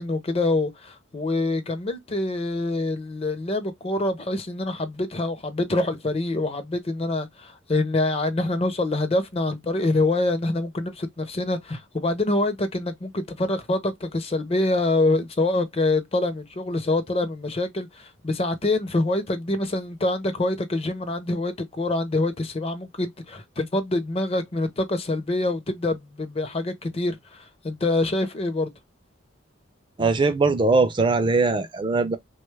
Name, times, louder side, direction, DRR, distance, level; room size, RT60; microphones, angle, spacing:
voice 1, 0.0-28.7, left 2 dB, 30° left, 0.5 m, -25 dB
voice 2, 30.0-32.2, right 3 dB, 25° right, 0.4 m, -21 dB
3.5 x 2.2 x 3.1 m
head